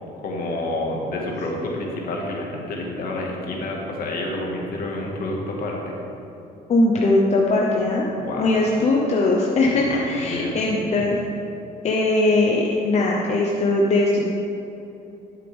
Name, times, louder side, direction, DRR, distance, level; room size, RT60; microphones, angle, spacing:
voice 1, 0.2-5.9 8.1-8.6 9.6-11.1, left 1 dB, 60° left, -1 dB, 1.8 m, -29 dB
voice 2, 6.7-8.1 8.4-11.2 11.8-14.2, left 2 dB, 40° left, -2 dB, 0.9 m, -20 dB
11.0 x 6.8 x 3.5 m, 2.9 s
cardioid pair, 110°, 17 cm